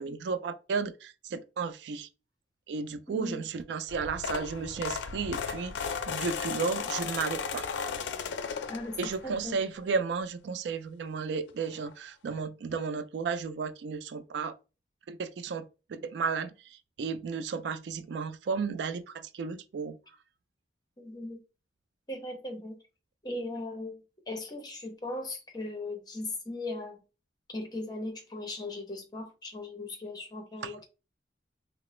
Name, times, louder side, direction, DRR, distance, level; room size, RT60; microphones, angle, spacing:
voice 1, 0.0-2.1 2.7-7.7 9.0-14.5 15.1-15.6 15.9-20.0 30.6-30.8, right 5 dB, 70° right, 0.3 m, -33 dB
voice 2, 3.1-3.4 8.7-9.6 21.0-21.4 22.1-22.8 23.2-24.0 24.3-27.0 27.5-30.8, left 2 dB, 25° left, 0.7 m, -38 dB
sound 1, 3.9-9.5 10.0-10.3 11.5-11.6 11.8-11.9 12.3-12.4, left 6 dB, 85° left, 0.4 m, -35 dB
3.7 x 2.0 x 3.0 m
head